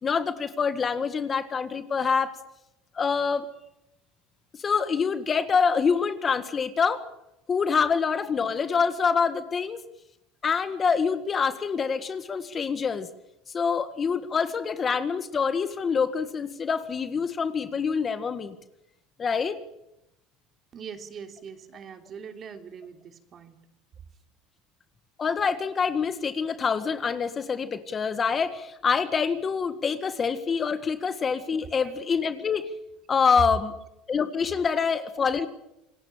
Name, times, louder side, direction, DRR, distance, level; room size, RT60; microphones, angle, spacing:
voice 1, 0.0-2.3 2.9-3.4 4.6-7.0 7.5-9.8 10.4-13.1 13.5-18.5 19.2-19.6 25.2-32.7 33.1-33.7 34.1-35.5, left 6 dB, 25° left, 11 dB, 1.7 m, -26 dB
voice 2, 20.7-23.6 30.1-30.2 31.8-31.9 35.4-35.5, right 7 dB, 35° right, 6 dB, 3.1 m, -42 dB
27.5 x 18.5 x 7.5 m, 0.87 s
supercardioid pair, 125°, 0 cm